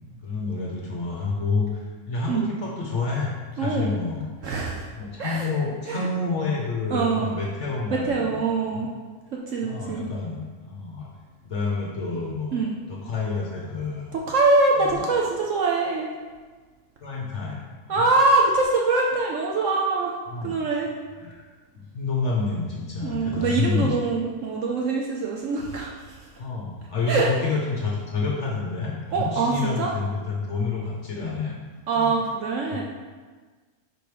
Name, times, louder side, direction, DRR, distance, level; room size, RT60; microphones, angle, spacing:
voice 1, 0.2-3.3 3.6-4.3 5.0-8.8 9.6-11.1 11.4-12.6 12.9-14.1 14.8-15.0 17.0-18.0 20.3-20.6 21.2-21.4 21.7-23.9 26.4-31.5 31.9-32.2 32.7-32.8, left 4 dB, 55° left, -3 dB, 1.2 m, -29 dB
voice 2, 3.6-3.9 4.4-4.9 5.2-5.5 5.9-6.1 6.9-7.3 7.9-8.9 9.3-10.1 12.5-12.8 14.1-16.1 17.9-20.1 20.4-20.9 23.0-26.3 27.1-27.3 29.1-29.9 31.9-32.8, right 3 dB, 65° right, -1 dB, 0.9 m, -24 dB
5.1 x 4.7 x 4.9 m, 1.4 s
omnidirectional pair, 1.6 m